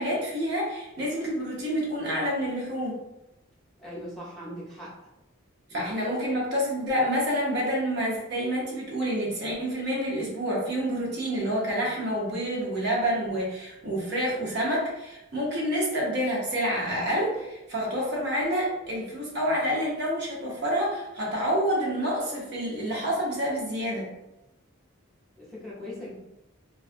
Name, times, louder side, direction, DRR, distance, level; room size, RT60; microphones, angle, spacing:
voice 1, 0.0-3.0 5.7-24.1, equal, 55° right, -4 dB, 0.7 m, -28 dB
voice 2, 3.8-5.1 5.7-6.1 25.4-26.1, left 1 dB, ahead, -9 dB, 0.8 m, -40 dB
2.3 x 2.3 x 2.5 m, 0.93 s
head